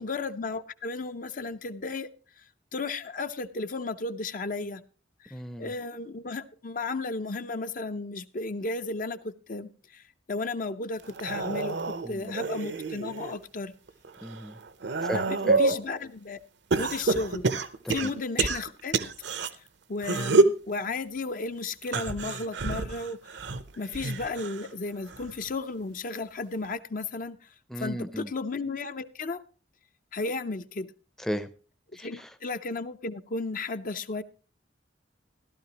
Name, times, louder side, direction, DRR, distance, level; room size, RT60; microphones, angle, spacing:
voice 1, 0.0-2.1 2.4-4.8 5.2-13.7 15.1-16.4 16.8-17.5 17.9-18.9 19.5-19.6 19.9-23.2 23.8-27.5 27.8-29.4 30.1-30.9 31.9-34.2, left 3 dB, 45° left, 10 dB, 0.6 m, -34 dB
voice 2, 5.3-5.7 12.0-12.3 14.2-14.6 15.0-15.6 17.8-18.1 27.7-28.3 31.2-31.5 31.9-32.3, equal, 5° left, 10 dB, 0.6 m, -35 dB
sound 1, 11.0-13.4 13.9-15.8 16.7-19.5 20.0-20.6 21.8-24.7 25.1-25.5 26.6-26.7, right 3 dB, 70° right, 0.8 m, -28 dB
15.5 x 12.0 x 2.9 m, 0.37 s
head